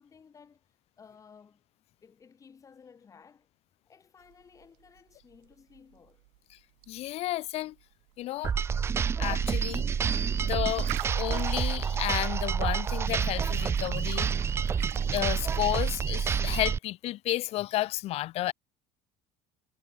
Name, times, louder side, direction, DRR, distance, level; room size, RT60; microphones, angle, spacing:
voice 1, 0.0-1.6 2.0-3.5 3.9-6.2, left 6 dB, 20° left, 7.3 m, -56 dB
sound 1, 4.2-15.9, right 40 dB or more, 85° right, 1.4 m, -48 dB
voice 2, 6.9-7.7 8.2-8.6 9.2-9.9 10.3-10.9 11.1-14.3 15.1-18.5, left 16 dB, 40° left, 0.5 m, -32 dB
sound 2, 8.4-16.8, right 6 dB, 15° right, 0.4 m, -28 dB
cardioid pair, 160°, 15 cm